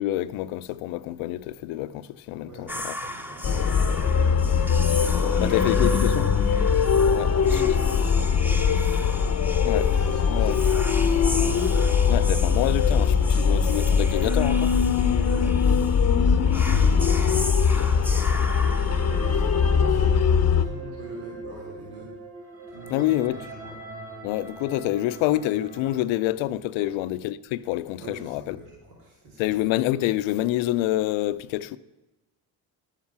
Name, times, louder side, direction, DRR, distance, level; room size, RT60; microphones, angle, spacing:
voice 1, 0.0-3.0 5.1-6.3 7.1-7.6 9.6-9.9 10.3-10.6 12.1-14.7 16.8-17.1 22.9-23.4 24.2-28.6 29.4-31.8, left 14 dB, 80° left, 0.6 m, -27 dB
voice 2, 2.4-4.8 5.2-6.7 7.0-9.0 9.9-11.6 15.2-15.6 16.4-18.5 19.2-22.1 22.7-23.7 26.7-26.9 28.0-29.5, right 2 dB, 80° right, 3.3 m, -44 dB
Whispering, 2.7-19.8, equal, 5° right, 0.9 m, -37 dB
sound 1, 3.4-20.7, left 6 dB, 35° left, 0.8 m, -21 dB
sound 2, 18.9-26.0, right 3 dB, 30° right, 1.7 m, -40 dB
11.5 x 7.5 x 5.9 m
supercardioid pair, 75°, 46 cm